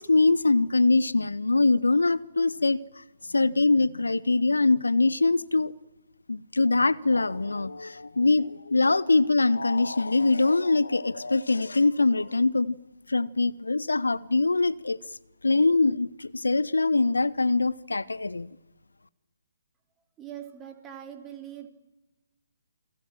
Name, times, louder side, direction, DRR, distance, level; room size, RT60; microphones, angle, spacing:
voice 1, 0.0-2.8 3.3-5.7 6.3-12.8 13.1-15.0 15.4-18.5, left 3 dB, 70° left, 0.9 m, -23 dB
voice 2, 20.2-21.7, right 10 dB, 15° right, 3.3 m, -42 dB
29.5 x 22.5 x 8.9 m
figure-of-eight pair, 135°, 0 cm